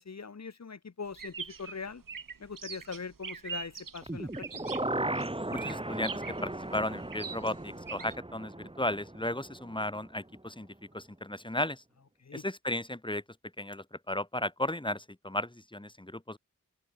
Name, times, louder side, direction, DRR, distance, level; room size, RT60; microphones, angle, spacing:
voice 1, 0.0-2.0 2.4-4.5 12.2-12.4, left 5 dB, 55° left, 1.6 m, -42 dB
sound 1, 1.1-8.1, right 6 dB, 75° right, 2.9 m, -43 dB
sound 2, 4.0-10.0 10.4-10.5, right 1 dB, 15° right, 1.9 m, -37 dB
voice 2, 5.5-10.7 10.9-11.8 12.3-13.2 13.6-16.4, left 1 dB, 15° left, 2.5 m, -35 dB
open air
cardioid pair, 40°, 33 cm